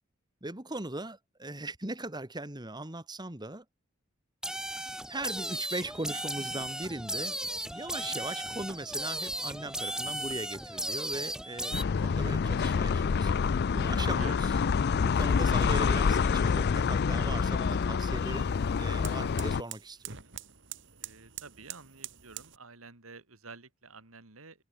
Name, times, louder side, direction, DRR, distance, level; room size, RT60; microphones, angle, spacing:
voice 1, 0.4-3.6 4.6-4.8 5.1-7.4 7.7-13.3 13.7-14.5 15.0-20.1, right 2 dB, 20° right, 2.2 m, -39 dB
sound 1, 4.4-11.8, right 1 dB, 5° right, 2.3 m, -36 dB
sound 2, 11.7-19.6, left 5 dB, 50° left, 0.4 m, -27 dB
sound 3, 15.8-22.6, right 11 dB, 60° right, 4.3 m, -48 dB
voice 2, 21.0-24.6, right 4 dB, 90° right, 2.9 m, -49 dB
head